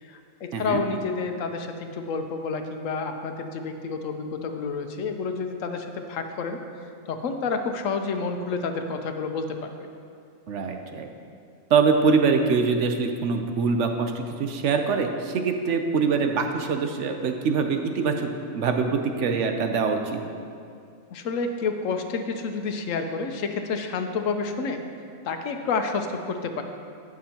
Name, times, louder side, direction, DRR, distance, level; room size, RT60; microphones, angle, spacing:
voice 1, 0.0-6.6 7.1-9.9 21.1-24.8 25.2-26.6, left 4 dB, 75° left, 6 dB, 1.1 m, -29 dB
voice 2, 0.5-0.8 10.5-11.1 11.7-20.2, right 5 dB, 65° right, 5 dB, 1.0 m, -24 dB
16.5 x 6.2 x 2.9 m, 2.3 s
omnidirectional pair, 1.4 m